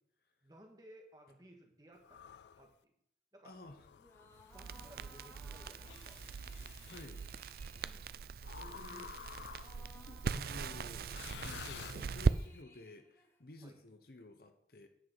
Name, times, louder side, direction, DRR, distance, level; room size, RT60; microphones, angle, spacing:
voice 1, 0.4-2.9 3.3-3.5 4.5-6.3 7.8-8.1 8.4-9.1 9.8-10.2 13.6-13.8, right 1 dB, 20° right, 1 dB, 1.8 m, -58 dB
sound 1, 2.0-2.7 3.7-4.9 5.8-7.1 8.4-10.0 11.0-12.5, left 8 dB, 75° left, 0.3 m, -51 dB
voice 2, 3.4-3.8 6.6-7.2 8.4-9.1 9.9-14.9, left 2 dB, 55° left, 7 dB, 1.1 m, -54 dB
sound 2, 4.0-13.7, left 1 dB, 15° left, 0.9 m, -62 dB
Crackle, 4.5-12.4, right 5 dB, 55° right, 0.4 m, -39 dB
10.0 x 5.6 x 7.8 m, 0.72 s
head